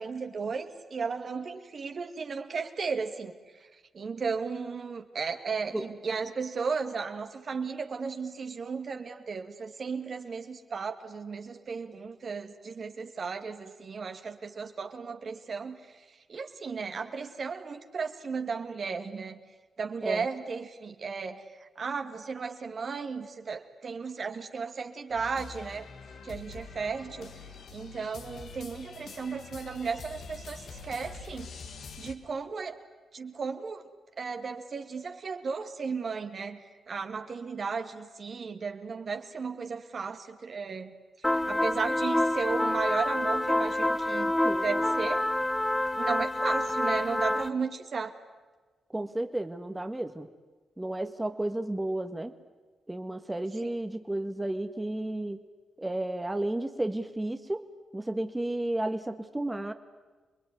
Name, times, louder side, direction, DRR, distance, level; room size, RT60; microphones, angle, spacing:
voice 1, 0.0-3.3 3.9-15.8 16.3-19.4 19.8-21.4 21.8-25.9 26.2-27.3 27.7-31.5 32.0-32.9 33.1-33.8 34.2-40.9 41.5-44.3 44.6-45.2 46.0-48.1 53.6-53.7, right 5 dB, 55° right, 6 dB, 2.2 m, -35 dB
sound 1, 25.1-32.1, left 4 dB, 70° left, 2.3 m, -45 dB
sound 2, 41.2-47.5, left 1 dB, 15° left, 1.3 m, -27 dB
voice 2, 48.9-50.3 50.8-52.3 52.9-55.4 55.8-57.7 57.9-59.7, right 1 dB, 15° right, 7 dB, 1.8 m, -32 dB
28.0 x 21.0 x 9.7 m, 1.3 s
supercardioid pair, 50°, 0 cm